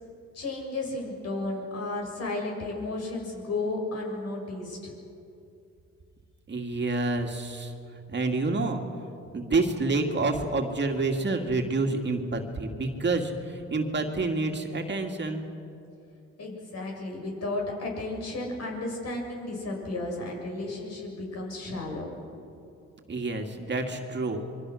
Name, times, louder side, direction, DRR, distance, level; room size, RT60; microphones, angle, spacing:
voice 1, 0.3-4.9 16.4-22.1, left 2 dB, 55° left, 0 dB, 7.5 m, -33 dB
voice 2, 6.5-7.7 8.1-8.8 9.3-15.4 23.1-24.5, right 3 dB, 35° right, 3 dB, 2.4 m, -28 dB
27.0 x 23.5 x 6.5 m, 2.7 s
cardioid pair, 90°, 30 cm